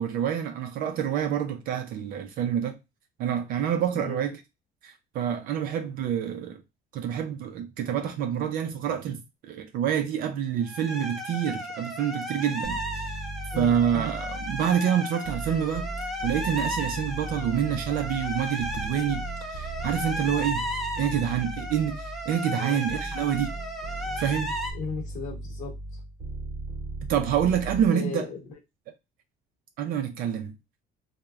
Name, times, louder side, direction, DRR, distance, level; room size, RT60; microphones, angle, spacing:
voice 1, 0.0-2.8 3.2-4.4 4.8-6.6 6.9-9.2 9.5-13.0 13.6-15.9 16.2-20.7 21.0-23.5 24.2-24.5 27.1-28.3 29.8-30.5, right 9 dB, 55° right, 0.4 m, -27 dB
sound 1, 10.6-24.7, right 1 dB, ahead, 0.4 m, -34 dB
sound 2, 12.6-14.8 15.2-22.4 22.9-27.9, right 1 dB, 25° right, 0.9 m, -37 dB
voice 2, 22.5-22.8 24.7-26.0 27.9-28.5, left 4 dB, 45° left, 0.9 m, -36 dB
3.1 x 2.1 x 2.3 m
cardioid pair, 165°, 17 cm